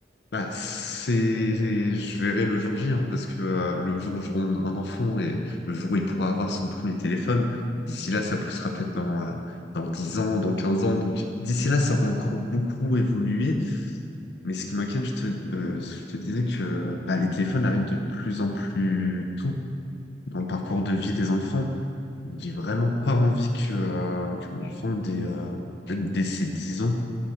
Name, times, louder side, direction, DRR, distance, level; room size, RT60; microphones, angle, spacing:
voice 1, 0.3-13.9 14.4-19.6 20.3-21.8 22.2-27.0, left 2 dB, 70° left, 3 dB, 0.6 m, -27 dB
9.6 x 4.9 x 4.4 m, 2.5 s
head